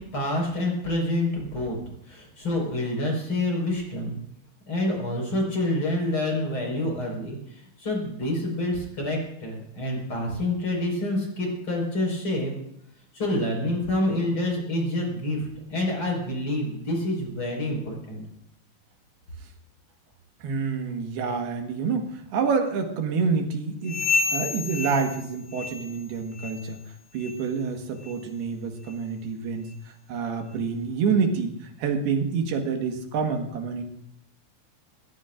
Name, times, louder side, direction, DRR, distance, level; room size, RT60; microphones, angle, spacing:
voice 1, 0.1-1.8 2.1-4.2 4.7-12.5 13.1-18.2, left 1 dB, 35° left, 0 dB, 5.4 m, -27 dB
voice 2, 20.4-24.0 24.3-26.8 27.1-31.5 31.8-33.8, right 5 dB, 80° right, 4 dB, 3.5 m, -27 dB
sound 1, 23.8-26.1 26.3-26.7 27.2-27.4 28.0-28.2 28.9-29.0 29.7-29.8, left 4 dB, 70° left, 3.7 m, -30 dB
20.5 x 18.0 x 2.5 m, 0.74 s
omnidirectional pair, 4.5 m